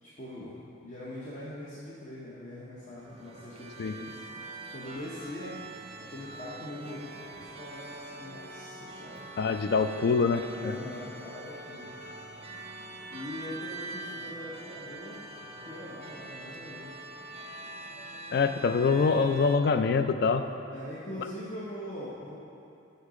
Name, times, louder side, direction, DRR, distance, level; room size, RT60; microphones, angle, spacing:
voice 1, 0.0-4.2 4.7-5.6 6.0-9.2 10.5-12.0 13.1-15.2 15.6-17.0 20.4-20.5 20.7-22.4, left 1 dB, 40° left, -8 dB, 0.8 m, -42 dB
sound 1, 2.8-19.6, right 2 dB, 30° right, 0.4 m, -44 dB
voice 2, 9.4-10.8 18.3-20.4, left 5 dB, 55° left, 9 dB, 0.3 m, -25 dB
6.6 x 5.6 x 5.0 m, 2.7 s
head